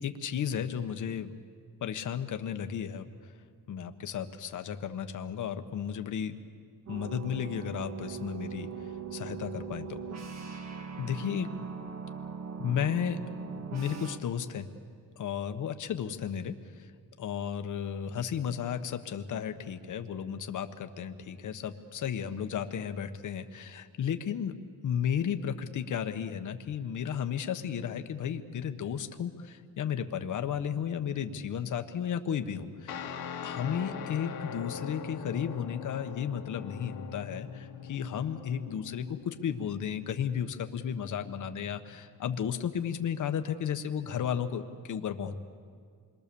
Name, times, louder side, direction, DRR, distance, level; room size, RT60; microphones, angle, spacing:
voice 1, 0.0-1.3 1.8-3.1 3.7-6.3 6.9-8.7 9.1-10.0 11.0-11.5 12.6-13.2 13.7-14.7 15.2-16.5 16.8-16.9 17.2-24.5 24.8-33.1 33.4-45.4, left 8 dB, 55° left, 8 dB, 1.2 m, -33 dB
sound 1, 6.9-14.2, right 5 dB, 45° right, 1.9 m, -40 dB
Guitar, 32.9-41.8, left 7 dB, 85° left, 2.0 m, -42 dB
28.5 x 22.5 x 7.0 m, 2.2 s
wide cardioid pair, 175°, 36 cm